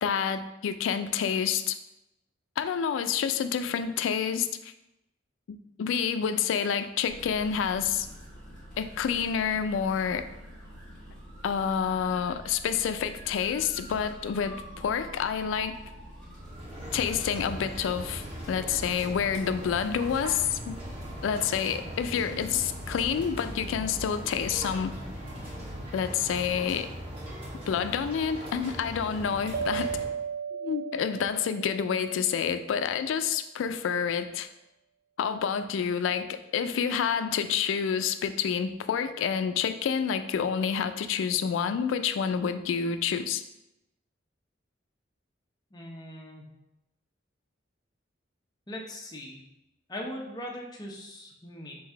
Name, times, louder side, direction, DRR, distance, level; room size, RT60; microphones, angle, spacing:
voice 1, 0.0-1.8 2.6-4.7 5.5-8.1 8.8-10.3 11.4-15.8 16.9-20.8 21.2-24.9 25.9-26.9 27.7-29.9 30.5-34.5 35.2-43.4, left 7 dB, 90° left, 10 dB, 0.3 m, -28 dB
sound 1, 7.0-25.9, equal, 5° left, 1.3 m, -46 dB
sound 2, 16.4-30.1, equal, 30° right, 1.1 m, -40 dB
sound 3, 29.5-32.5, right 7 dB, 50° right, 0.5 m, -35 dB
voice 2, 45.7-46.4 48.7-49.4 49.9-51.8, left 1 dB, 20° left, -1 dB, 0.6 m, -40 dB
3.8 x 2.6 x 4.4 m, 0.91 s
head